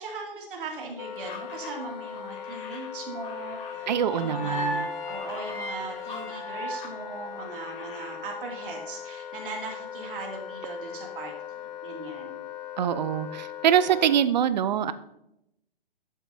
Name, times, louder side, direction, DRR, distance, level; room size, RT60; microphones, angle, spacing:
voice 1, 0.0-12.4, right 3 dB, 65° right, -1 dB, 2.6 m, -39 dB
Wind instrument woodwind instrument, 1.0-14.3, left 9 dB, 45° left, 0.6 m, -39 dB
sound 1, 1.1-7.0 7.2-8.2, left 4 dB, 65° left, 3.2 m, -46 dB
sound 2, 3.7-7.9, equal, 10° left, 1.4 m, -36 dB
voice 2, 3.9-4.9 12.8-14.9, right 9 dB, 45° right, 14 dB, 0.7 m, -24 dB
12.5 x 8.0 x 2.7 m, 0.81 s
hypercardioid pair, 155°, 29 cm